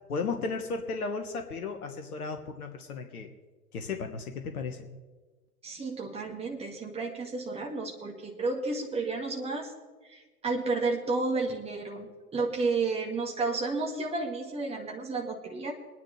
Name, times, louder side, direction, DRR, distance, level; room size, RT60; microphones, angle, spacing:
voice 1, 0.1-3.3 3.7-4.8, left 4 dB, 70° left, 6 dB, 1.4 m, -34 dB
voice 2, 5.6-9.7 10.1-15.7, right 3 dB, 15° right, 0 dB, 1.9 m, -32 dB
23.5 x 10.5 x 3.3 m, 1.3 s
figure-of-eight pair, 100°, 47 cm